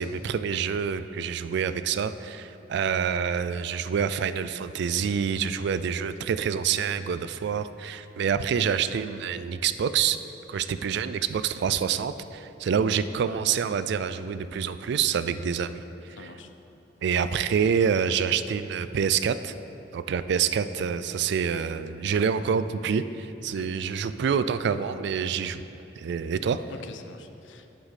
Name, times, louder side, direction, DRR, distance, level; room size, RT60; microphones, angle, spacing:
voice 1, 0.0-10.2 10.5-15.8 17.0-19.5 19.9-25.6 26.0-26.6, right 7 dB, 65° right, 13 dB, 0.3 m, -27 dB
voice 2, 16.2-16.5 23.5-23.7 25.8-25.9 26.7-27.7, left 4 dB, 85° left, 7 dB, 0.6 m, -45 dB
8.1 x 8.0 x 4.1 m, 3.0 s
head